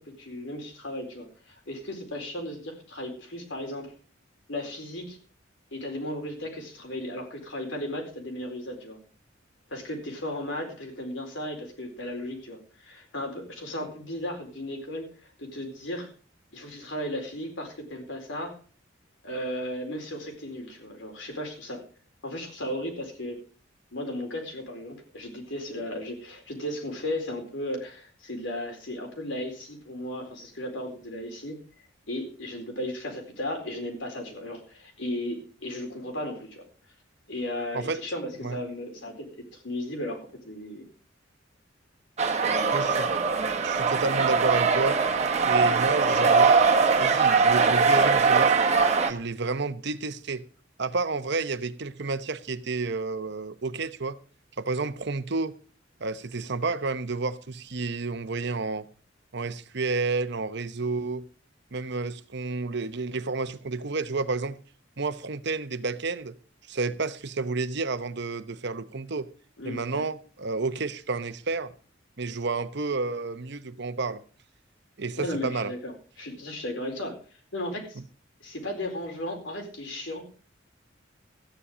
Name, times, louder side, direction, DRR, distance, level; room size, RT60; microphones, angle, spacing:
voice 1, 0.2-3.9 4.5-5.2 5.7-9.0 9.7-15.1 15.4-16.1 16.5-18.6 19.2-21.8 22.2-23.4 23.9-31.6 32.1-36.6 37.3-40.8 42.4-43.0 69.6-69.8 75.2-77.2 77.5-78.0 78.4-80.3, left 1 dB, 70° left, 4.3 m, -35 dB
sound 1, 42.2-49.1, right 5 dB, 35° right, 1.5 m, -21 dB
voice 2, 42.7-43.1 43.6-45.0 45.4-48.5 49.0-50.4 50.8-54.2 54.6-55.5 56.0-58.8 59.3-61.3 61.7-64.6 65.0-66.3 66.7-69.3 69.6-71.7 72.2-74.2 75.0-75.7 78.0-78.1, right 3 dB, 65° right, 1.0 m, -30 dB
14.0 x 10.0 x 5.1 m
head